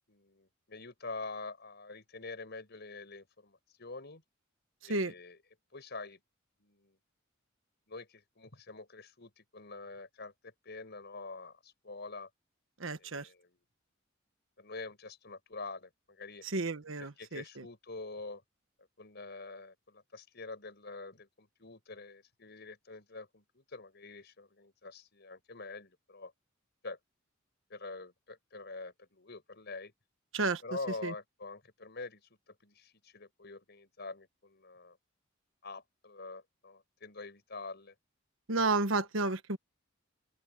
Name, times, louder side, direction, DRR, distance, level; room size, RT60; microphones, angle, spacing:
voice 1, 0.1-4.2 4.8-5.4 5.7-6.2 6.6-7.0 7.9-12.3 13.0-13.6 14.6-16.4 17.2-18.4 19.0-26.3 26.8-27.0 27.7-29.9 30.6-32.2 32.5-35.0 35.6-37.9, left 3 dB, 55° left, 5.6 m, -46 dB
voice 2, 12.8-13.3 16.4-17.6 30.3-30.6 31.0-31.1 38.5-39.6, right 3 dB, 75° right, 1.4 m, -32 dB
head